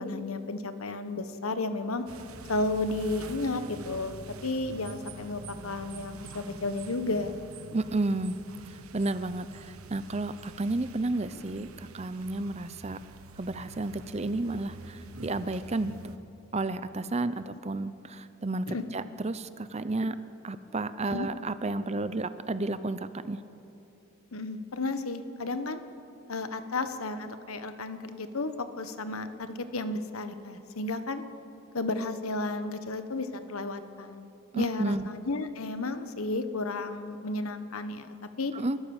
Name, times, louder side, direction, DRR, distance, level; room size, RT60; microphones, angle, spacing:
voice 1, 0.0-2.0 2.5-7.3 18.7-18.8 21.1-21.3 24.3-25.8 26.3-31.2 31.7-34.3 34.5-38.5, left 2 dB, 80° left, 10 dB, 1.2 m, -33 dB
sound 1, 2.1-16.2, right 3 dB, 80° right, 1.3 m, -46 dB
voice 2, 7.7-8.4 8.9-13.0 13.4-16.2 16.5-20.2 20.4-23.4 34.5-35.1 38.5-38.8, right 2 dB, 30° right, 13 dB, 0.6 m, -32 dB
29.5 x 14.0 x 7.2 m, 2.9 s
head